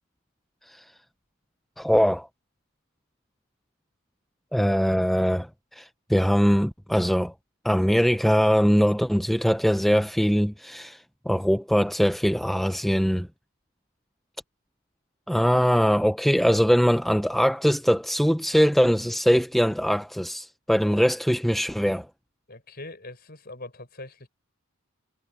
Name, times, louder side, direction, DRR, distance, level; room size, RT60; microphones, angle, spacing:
voice 1, 1.8-2.3 4.5-5.5 5.7-7.3 7.6-13.3 15.3-22.1, equal, ahead, 0.4 m, -22 dB
voice 2, 22.5-24.3, left 2 dB, 45° left, 5.5 m, -42 dB
head